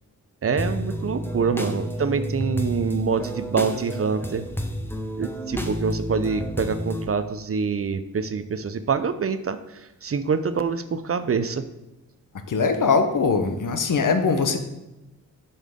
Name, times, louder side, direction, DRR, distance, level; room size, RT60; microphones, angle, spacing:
voice 1, 0.4-4.5 5.2-11.6, right 5 dB, 40° right, 11 dB, 0.5 m, -26 dB
sound 1, 0.6-7.1, equal, 5° left, 0.9 m, -30 dB
voice 2, 12.5-14.6, left 4 dB, 60° left, 7 dB, 0.9 m, -21 dB
7.4 x 5.6 x 3.6 m, 0.98 s
cardioid pair, 60°, 35 cm